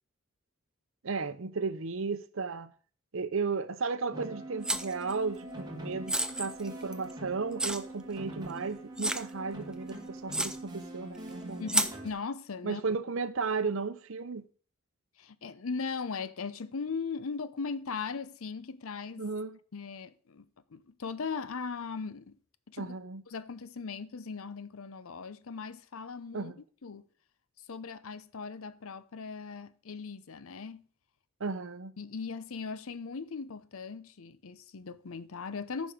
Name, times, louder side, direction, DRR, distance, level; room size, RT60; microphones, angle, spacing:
voice 1, 1.0-2.7 3.1-11.6 12.6-14.4 19.2-19.6 22.8-23.2 26.3-26.6 31.4-31.9, right 4 dB, 65° right, 0.7 m, -34 dB
sound 1, 4.1-12.1, right 1 dB, 20° right, 1.6 m, -43 dB
sound 2, 4.6-5.1 6.1-7.1 7.6-7.8 8.4-8.5 9.0-9.3 9.9-10.0 10.3-10.6 11.7-12.0, right 2 dB, 5° right, 0.4 m, -30 dB
voice 2, 11.6-12.8 15.2-19.2 19.7-20.5 20.7-22.4 22.7-22.9 23.3-26.5 26.8-27.0 27.7-30.8 32.0-35.9, left 5 dB, 75° left, 0.6 m, -38 dB
14.0 x 5.3 x 5.1 m
head